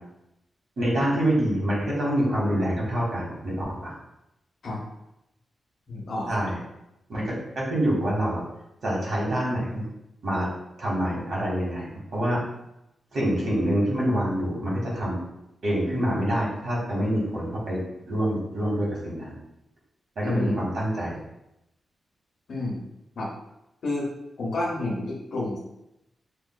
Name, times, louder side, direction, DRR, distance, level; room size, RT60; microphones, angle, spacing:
voice 1, 0.8-3.9 6.3-6.6 7.1-8.4 8.8-9.8 10.2-10.5 10.8-12.4 13.1-15.2 15.6-19.3 20.1-21.2, equal, 60° right, -5 dB, 1.4 m, -26 dB
voice 2, 5.9-6.5 20.2-20.5 22.5-22.8 23.2-23.3 23.8-24.1 24.4-25.6, left 2 dB, 55° left, -4 dB, 1.0 m, -29 dB
5.9 x 2.6 x 2.2 m, 0.86 s
wide cardioid pair, 170°, 0 cm